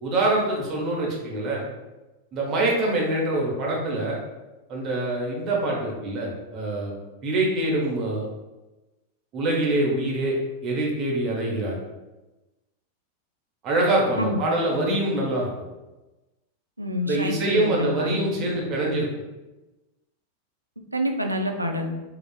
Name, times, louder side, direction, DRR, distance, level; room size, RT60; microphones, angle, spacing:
voice 1, 0.0-1.6 2.3-4.2 4.7-6.9 7.2-8.3 9.3-11.8 13.6-15.5 17.0-19.1, right 2 dB, 35° right, -2 dB, 0.8 m, -25 dB
voice 2, 16.8-18.5 20.9-21.9, equal, 85° right, 4 dB, 0.3 m, -27 dB
3.8 x 2.3 x 2.3 m, 1.1 s
figure-of-eight pair, 90°, 0 cm